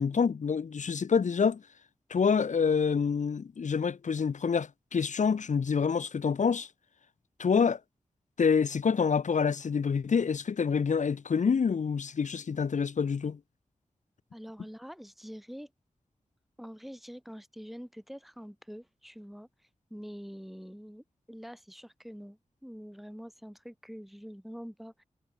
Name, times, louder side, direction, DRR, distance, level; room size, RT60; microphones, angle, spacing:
voice 1, 0.0-1.6 2.1-6.7 7.4-7.8 8.4-13.4, left 6 dB, 80° left, 2.2 m, -27 dB
voice 2, 14.3-15.7 16.6-19.5 19.9-25.0, equal, ahead, 6.3 m, -45 dB
wide cardioid pair, 130°, 12 cm